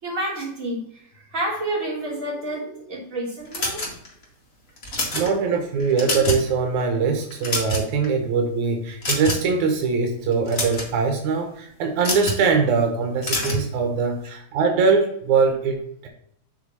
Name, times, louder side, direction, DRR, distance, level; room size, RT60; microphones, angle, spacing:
voice 1, 0.0-3.9 4.9-5.5, right 1 dB, 25° right, -4 dB, 3.4 m, -30 dB
sound 1, 3.5-4.2 4.8-5.3 5.8-6.5 6.8-7.0 7.3-8.1 9.0-9.5 10.3-10.9 12.0-12.4 13.2-13.6, left 1 dB, 30° left, 2.1 m, -26 dB
voice 2, 5.1-16.1, right 5 dB, 85° right, 5 dB, 2.5 m, -22 dB
7.9 x 4.4 x 5.6 m, 0.69 s
omnidirectional pair, 3.4 m